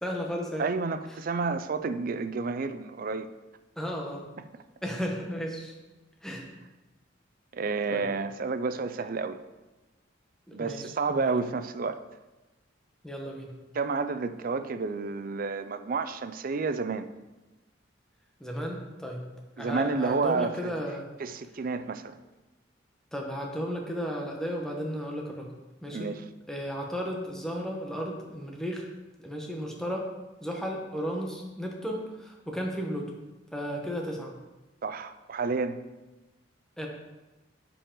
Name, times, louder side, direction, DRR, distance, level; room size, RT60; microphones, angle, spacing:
voice 1, 0.0-0.7 3.8-4.3 4.8-5.7 6.2-6.5 7.9-8.1 10.5-11.3 13.0-13.5 18.4-19.2 19.6-21.1 23.1-25.5 25.8-26.1 26.5-28.9 29.2-30.1 30.4-33.1 33.5-34.3 36.8-36.9, equal, 5° left, 0 dB, 1.0 m, -34 dB
voice 2, 0.6-3.3 7.5-9.4 10.5-12.0 13.7-17.1 19.6-20.7 21.2-22.2 25.9-26.2 34.8-35.8, right 4 dB, 45° right, 11 dB, 0.4 m, -30 dB
9.7 x 4.9 x 3.8 m, 1.1 s
head